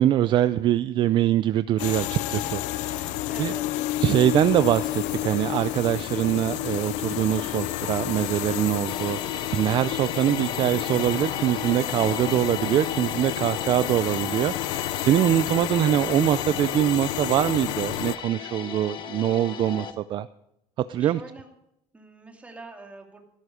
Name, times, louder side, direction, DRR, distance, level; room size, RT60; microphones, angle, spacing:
voice 1, 0.0-3.5 4.0-20.3 20.9-21.2, right 12 dB, 40° right, 14 dB, 0.4 m, -23 dB
sound 1, 1.8-18.2, left 15 dB, 75° left, 0.7 m, -30 dB
voice 2, 2.6-3.0 3.3-4.3 20.9-21.5 21.9-23.3, right 3 dB, 10° right, 2 dB, 2.4 m, -46 dB
Organ, 5.6-16.2, right 2 dB, 65° right, 5.1 m, -51 dB
sound 2, 8.8-19.9, left 8 dB, 40° left, 1.2 m, -36 dB
15.5 x 13.0 x 5.0 m, 0.78 s
cardioid pair, 165°, 12 cm